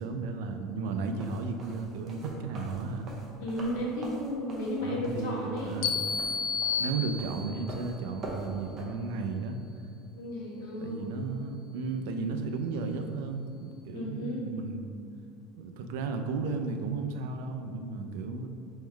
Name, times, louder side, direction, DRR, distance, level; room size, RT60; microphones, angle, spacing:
voice 1, 0.0-3.1 4.8-5.9 6.8-9.6 10.8-14.8 15.6-18.5, right 4 dB, 70° right, 6 dB, 0.4 m, -34 dB
sound 1, 1.1-8.8, right 2 dB, 25° right, 0.6 m, -45 dB
voice 2, 3.4-5.9 10.1-11.2 13.9-14.5, equal, 85° left, -4 dB, 1.2 m, -34 dB
sound 2, 5.8-7.7, left 6 dB, 55° left, 0.4 m, -31 dB
3.6 x 3.1 x 4.5 m, 2.5 s
cardioid pair, 175°, 0 cm